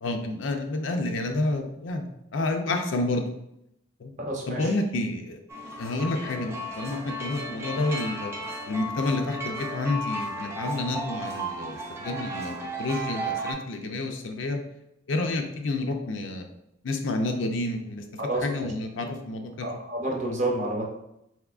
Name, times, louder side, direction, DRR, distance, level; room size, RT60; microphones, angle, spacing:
voice 1, 0.0-3.3 4.0-4.1 4.5-5.4 5.8-8.3 8.7-14.6 15.1-16.5 16.8-18.0 18.4-19.7, left 2 dB, 75° left, 4 dB, 0.5 m, -29 dB
voice 2, 4.2-4.7 18.2-18.4 19.6-20.9, right 1 dB, 40° right, -1 dB, 0.7 m, -29 dB
sound 1, 5.5-13.5, right 1 dB, 15° right, 0.4 m, -34 dB
3.5 x 2.8 x 2.4 m, 0.80 s
head